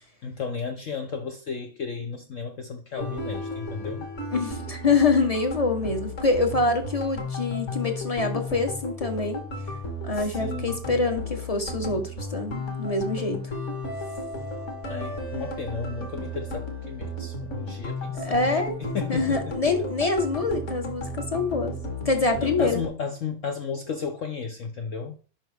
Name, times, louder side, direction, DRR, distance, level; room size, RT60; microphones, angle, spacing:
voice 1, 0.2-4.1 10.1-10.8 14.9-18.5 18.9-19.4 22.4-25.2, left 5 dB, 70° left, 0.7 m, -33 dB
sound 1, 3.0-22.9, left 1 dB, 40° left, 1.7 m, -34 dB
voice 2, 4.3-9.4 10.0-13.5 18.1-18.8 19.1-21.8 22.0-22.8, left 3 dB, 25° left, 0.9 m, -25 dB
11.5 x 4.6 x 3.4 m
omnidirectional pair, 2.2 m